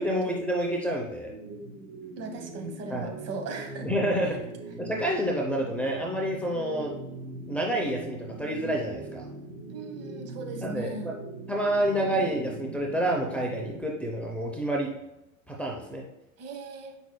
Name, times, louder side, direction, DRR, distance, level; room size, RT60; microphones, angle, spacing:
voice 1, 0.0-1.3 2.9-3.1 3.8-4.5 4.8-6.9 7.5-9.3 10.6-11.2 11.5-14.9 15.5-16.0, right 1 dB, 5° left, -2 dB, 0.6 m, -28 dB
sound 1, 1.2-13.8, right 3 dB, 80° right, 1.8 m, -41 dB
voice 2, 2.2-3.9 4.2-4.4 9.7-11.1 16.4-17.0, right 3 dB, 35° right, 5 dB, 1.2 m, -38 dB
8.0 x 5.4 x 2.2 m, 0.94 s
supercardioid pair, 125°, 42 cm